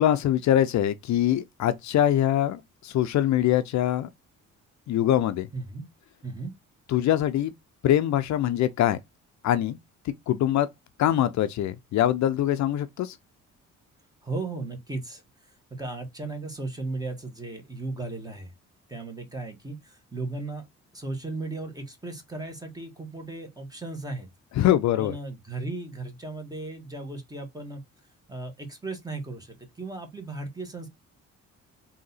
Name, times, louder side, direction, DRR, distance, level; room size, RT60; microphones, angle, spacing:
voice 1, 0.0-4.1 4.9-5.5 6.9-7.5 7.8-9.0 9.4-9.8 10.0-10.7 11.0-13.2 24.6-25.2, left 12 dB, 65° left, 0.5 m, -23 dB
voice 2, 5.5-5.9 6.2-6.5 14.2-18.5 18.9-20.7 20.9-24.3 24.9-27.8 28.3-30.9, right 2 dB, 10° right, 1.6 m, -36 dB
3.8 x 2.8 x 4.0 m
cardioid pair, 90°, 30 cm